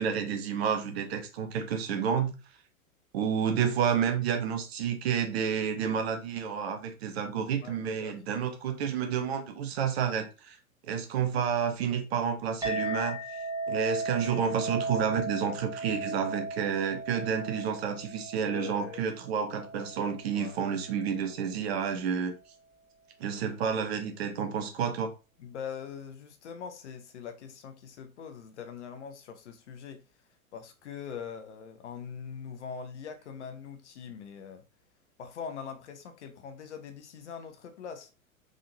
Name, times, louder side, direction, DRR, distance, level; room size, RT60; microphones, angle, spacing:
voice 1, 0.0-2.3 3.1-10.6 10.9-13.2 13.7-22.3 23.2-25.1, right 7 dB, 50° right, 0.9 m, -30 dB
voice 2, 7.6-8.4 18.4-19.1 20.3-20.6 25.4-30.0 30.5-34.6 35.2-38.1, left 7 dB, 55° left, 0.8 m, -42 dB
Chink clink, 12.6-21.3, right 2 dB, 10° right, 1.4 m, -37 dB
3.7 x 3.7 x 2.7 m
figure-of-eight pair, 95°, 41 cm